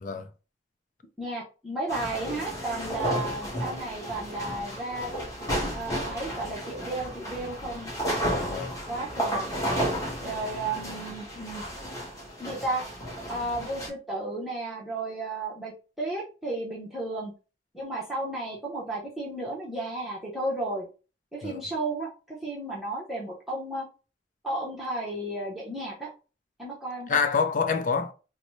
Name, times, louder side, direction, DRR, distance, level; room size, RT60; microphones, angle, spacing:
voice 1, 1.2-5.1 5.7-7.9 8.9-9.5 10.2-11.9 12.4-12.8 13.3-17.3 17.7-20.9 21.3-23.9 24.4-26.1 26.6-27.2, right 2 dB, ahead, 0.8 m, -33 dB
sound 1, 1.9-13.9, equal, 20° left, 1.2 m, -33 dB
voice 2, 8.4-8.8 21.4-21.6 27.1-28.1, left 5 dB, 45° left, 0.5 m, -26 dB
3.9 x 2.0 x 3.1 m
head